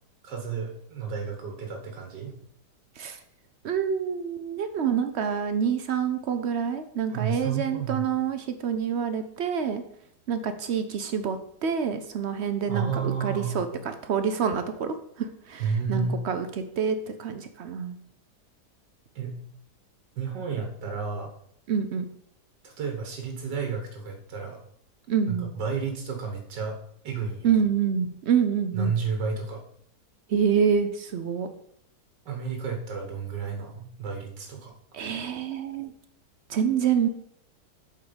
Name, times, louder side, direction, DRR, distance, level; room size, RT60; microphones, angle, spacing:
voice 1, 0.2-2.3 7.1-8.1 12.7-13.7 15.6-16.2 19.2-19.4 20.2-21.3 22.6-24.6 25.3-26.8 27.0-27.6 28.7-29.6 32.3-34.7, right 6 dB, 90° right, 2 dB, 1.8 m, -31 dB
voice 2, 3.6-9.8 10.3-18.0 21.7-22.1 25.1-25.5 27.4-29.0 30.3-31.5 34.9-35.9 36.5-37.1, right 7 dB, 65° right, 9 dB, 0.6 m, -27 dB
7.9 x 4.7 x 5.1 m, 0.69 s
omnidirectional pair, 1.8 m